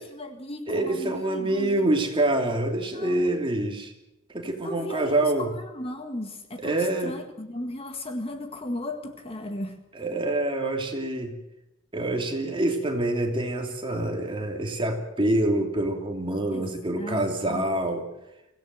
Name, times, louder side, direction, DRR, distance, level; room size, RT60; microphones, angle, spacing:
voice 1, 0.0-1.9 2.9-3.3 4.6-9.8 16.5-17.7, left 1 dB, 25° left, 6 dB, 1.8 m, -36 dB
voice 2, 0.7-3.9 4.3-5.5 6.6-7.2 9.9-11.4 11.9-18.1, right 1 dB, 25° right, 3 dB, 2.9 m, -26 dB
24.5 x 17.0 x 8.0 m, 0.91 s
head